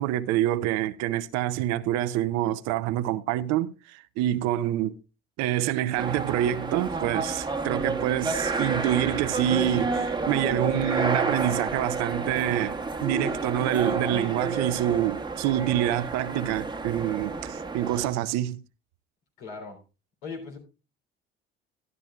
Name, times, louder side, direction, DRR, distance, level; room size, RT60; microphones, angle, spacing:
voice 1, 0.0-5.0 5.4-18.6, right 13 dB, 65° right, 0.6 m, -27 dB
sound 1, 6.0-18.2, right 3 dB, 15° right, 1.1 m, -30 dB
voice 2, 19.4-19.8 20.2-20.6, left 4 dB, 75° left, 3.7 m, -38 dB
12.5 x 12.0 x 2.4 m
hypercardioid pair, 60°, 30 cm